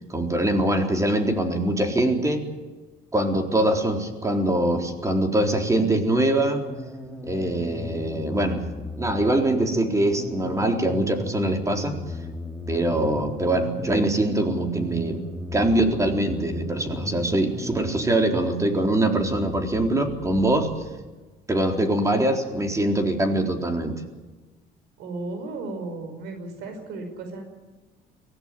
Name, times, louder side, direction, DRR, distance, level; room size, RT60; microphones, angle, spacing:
voice 1, 0.1-2.5 3.1-6.7 7.3-8.6 9.0-12.0 12.7-15.2 15.5-20.7 21.5-24.0, right 1 dB, 20° right, 4 dB, 4.0 m, -23 dB
sound 1, 6.6-21.1, left 2 dB, ahead, 3.4 m, -37 dB
voice 2, 25.0-27.5, right 3 dB, 85° right, 6 dB, 5.0 m, -34 dB
24.0 x 16.5 x 9.8 m, 1.2 s
cardioid pair, 110°, 17 cm